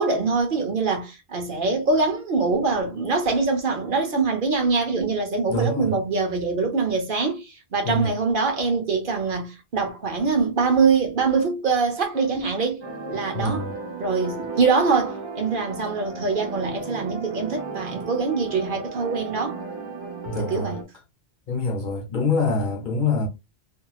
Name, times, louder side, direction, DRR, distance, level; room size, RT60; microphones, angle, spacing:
voice 1, 0.0-13.7 14.0-19.6 20.4-20.8, right 4 dB, 55° right, 1.0 m, -24 dB
voice 2, 5.5-6.0 7.8-8.1 13.3-13.7 20.3-20.8 21.5-23.3, left 3 dB, 55° left, 0.8 m, -25 dB
sound 1, 12.8-20.8, right 3 dB, 35° right, 0.4 m, -35 dB
2.8 x 2.8 x 2.3 m
omnidirectional pair, 1.1 m